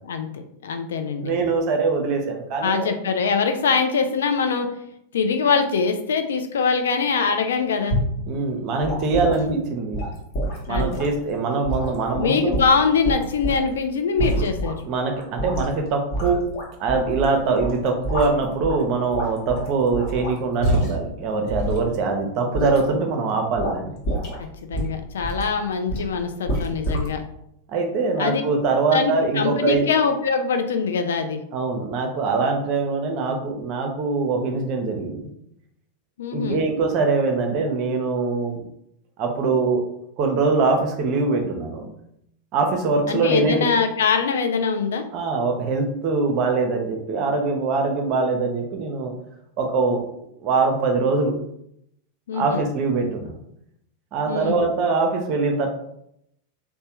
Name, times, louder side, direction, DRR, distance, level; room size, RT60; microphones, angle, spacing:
voice 1, 0.6-1.4 2.6-4.7 5.1-8.0 9.3-9.6 10.7-11.0 12.1-14.8 24.4-27.2 28.2-28.4 28.9-31.4 36.2-36.7 43.1-45.0 52.3-52.7 54.3-54.6, left 5 dB, 65° left, 7 dB, 0.3 m, -23 dB
voice 2, 1.2-2.9 8.3-10.0 10.7-12.6 14.8-16.4 16.8-24.0 27.7-29.9 31.5-35.2 36.3-38.6 39.2-39.8 40.2-41.9 42.5-43.7 45.1-49.1 49.6-50.0 50.4-51.4 52.3-53.3 54.1-55.7, right 4 dB, 40° right, 3 dB, 0.6 m, -23 dB
sound 1, 7.9-8.2 8.8-9.4 9.9-11.1 11.6-13.7 14.2-14.7 15.1-15.8 16.1-17.3 17.6-18.8 19.1-21.1 21.5-21.8 22.5-22.8 23.6-23.8 24.0-24.4 24.7-25.5 25.9-26.1 26.5-27.1, equal, 45° left, 1.0 m, -26 dB
3.1 x 2.1 x 2.8 m, 0.75 s
figure-of-eight pair, 90°, 0 cm